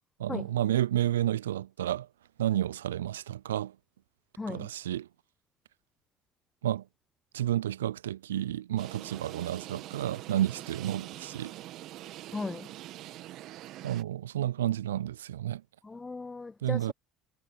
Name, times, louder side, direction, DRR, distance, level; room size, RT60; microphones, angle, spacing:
voice 1, 0.2-2.1 2.4-3.8 4.5-5.1 6.6-6.9 7.3-11.6 13.8-15.6 16.6-16.9, right 12 dB, 80° right, 0.5 m, -31 dB
voice 2, 4.4-4.7 12.3-12.7 15.8-16.9, left 3 dB, 20° left, 0.4 m, -37 dB
sound 1, 8.8-14.0, right 15 dB, 55° right, 2.1 m, -44 dB
figure-of-eight pair, 60°, 0 cm